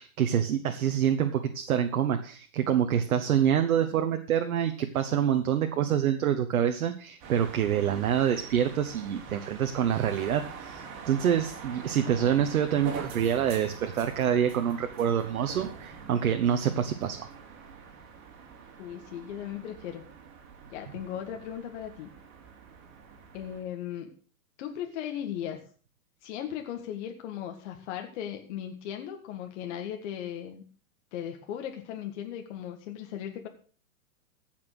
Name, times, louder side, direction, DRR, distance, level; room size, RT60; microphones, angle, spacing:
voice 1, 0.0-17.3, right 9 dB, 75° right, 6 dB, 1.4 m, -26 dB
sound 1, 7.2-23.6, right 5 dB, 40° right, 4.1 m, -44 dB
voice 2, 18.8-20.1 20.7-22.1 23.3-24.1 24.6-25.6 26.2-30.6 31.1-33.5, left 10 dB, 55° left, 4 dB, 1.9 m, -37 dB
15.5 x 6.1 x 6.2 m, 0.42 s
hypercardioid pair, 125°, 42 cm